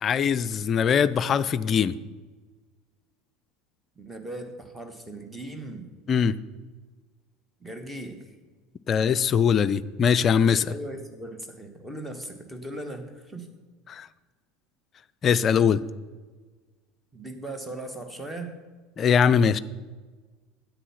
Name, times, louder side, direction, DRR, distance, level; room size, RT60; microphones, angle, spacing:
voice 1, 0.0-1.9 6.1-6.3 8.9-10.7 13.9-14.1 15.2-15.8 19.0-19.6, left 7 dB, 35° left, 15 dB, 0.4 m, -21 dB
voice 2, 3.9-5.9 7.6-8.4 10.7-13.5 17.1-18.6, right 1 dB, 10° right, 6 dB, 1.5 m, -38 dB
9.9 x 8.5 x 5.8 m, 1.4 s
figure-of-eight pair, 70°, 0 cm